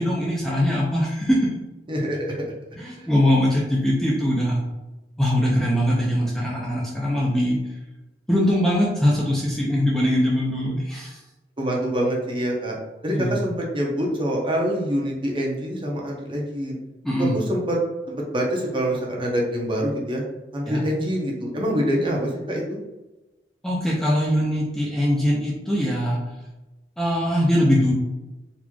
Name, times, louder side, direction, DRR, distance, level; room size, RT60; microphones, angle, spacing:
voice 1, 0.0-1.5 2.8-4.6 5.2-7.6 8.3-11.2 13.1-13.4 17.0-17.4 20.7-20.8 23.6-26.2 27.0-27.9, equal, 5° left, -5 dB, 0.5 m, -22 dB
voice 2, 1.9-2.5 3.0-3.1 11.6-12.7 13.0-16.8 17.2-17.8 18.1-20.2 20.5-22.6, equal, 30° right, -2 dB, 0.8 m, -25 dB
4.0 x 3.0 x 2.3 m, 1.1 s
head